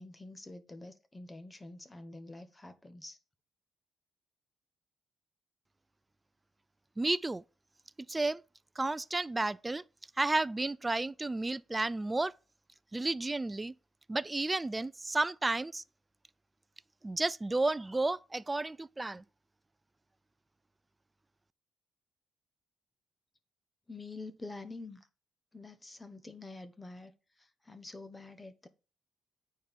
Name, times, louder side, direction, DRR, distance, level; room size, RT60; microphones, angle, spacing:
voice 1, 0.0-3.2 23.9-25.1 25.5-27.1 27.4-28.7, left 2 dB, 15° left, 1.1 m, -47 dB
voice 2, 7.0-7.4 8.1-8.4 8.8-9.8 10.2-12.3 12.9-13.7 14.1-15.8 17.0-19.2, right 2 dB, 20° right, 0.3 m, -32 dB
9.4 x 4.4 x 5.2 m
cardioid pair, 90°, 0 cm